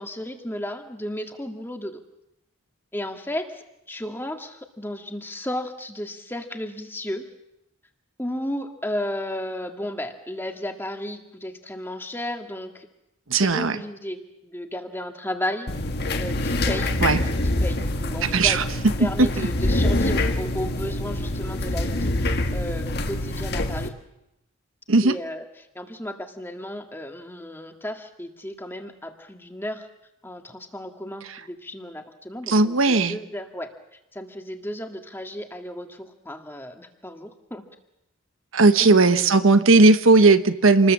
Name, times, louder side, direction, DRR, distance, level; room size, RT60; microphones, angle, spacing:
voice 1, 0.0-2.0 2.9-7.3 8.2-12.9 13.4-15.7 16.2-17.0 17.6-18.6 19.0-23.9 25.0-25.4 25.8-29.9 30.2-33.7 34.1-37.6 38.8-39.1, left 1 dB, 10° left, 4 dB, 1.9 m, -33 dB
voice 2, 13.3-13.8 17.0-17.2 18.2-18.6 19.0-19.5 24.9-25.1 32.5-33.2 38.5-40.9, right 3 dB, 80° right, 10 dB, 1.2 m, -17 dB
sound 1, 15.7-23.9, left 1 dB, 50° left, 1.7 m, -25 dB
28.0 x 20.5 x 7.5 m, 0.87 s
head